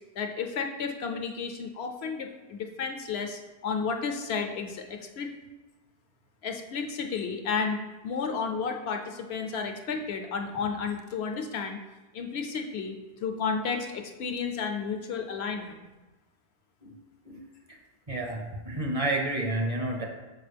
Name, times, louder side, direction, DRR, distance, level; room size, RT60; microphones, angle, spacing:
voice 1, 0.2-5.3 6.4-11.8 12.1-15.8, left 5 dB, 70° left, 4 dB, 0.8 m, -32 dB
voice 2, 18.1-20.0, right 2 dB, 35° right, 0 dB, 0.8 m, -30 dB
6.4 x 4.8 x 3.3 m, 1.2 s
omnidirectional pair, 1.1 m